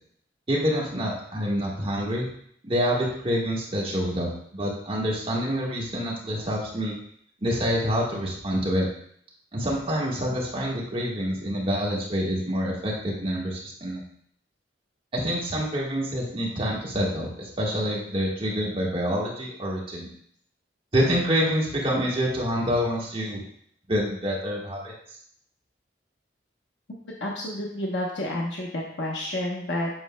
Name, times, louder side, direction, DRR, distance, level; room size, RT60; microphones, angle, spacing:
voice 1, 0.5-2.3 2.6-7.0 7.4-8.9 9.5-14.0 15.1-20.1 20.9-23.4 23.9-24.9, equal, 30° right, -4 dB, 1.5 m, -27 dB
voice 2, 27.2-29.9, left 1 dB, 75° left, -3 dB, 1.0 m, -30 dB
7.9 x 6.3 x 2.2 m, 0.65 s
head